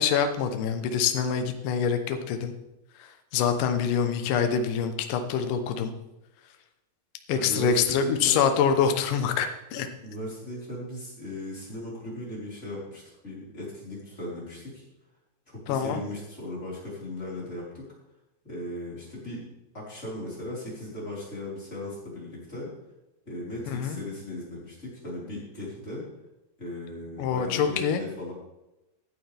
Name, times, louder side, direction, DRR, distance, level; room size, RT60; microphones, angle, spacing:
voice 1, 0.0-2.5 3.0-5.9 7.3-9.9 15.7-16.0 23.7-24.0 27.2-28.0, left 7 dB, 75° left, 7 dB, 1.9 m, -25 dB
voice 2, 7.3-8.5 10.0-14.8 15.5-17.9 18.4-19.4 19.7-22.7 23.2-26.0 26.6-28.3, left 1 dB, 15° left, -6 dB, 4.5 m, -37 dB
16.0 x 10.0 x 3.5 m, 0.96 s
omnidirectional pair, 5.3 m